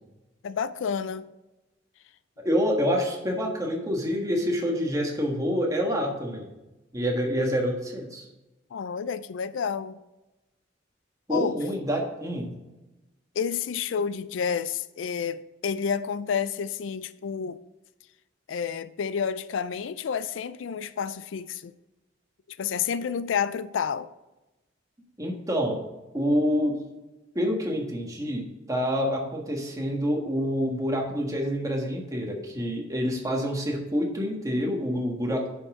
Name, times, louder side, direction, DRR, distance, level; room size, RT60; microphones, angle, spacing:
voice 1, 0.4-1.3 8.7-10.0 11.3-11.6 13.3-17.6 18.5-21.7 22.5-24.1 32.3-32.6, left 7 dB, 80° left, 0.4 m, -30 dB
voice 2, 2.4-6.5 6.9-8.2 11.3-12.5 25.2-25.8 26.1-26.8 27.3-35.5, equal, 20° right, 1.5 m, -27 dB
9.8 x 5.5 x 3.7 m
head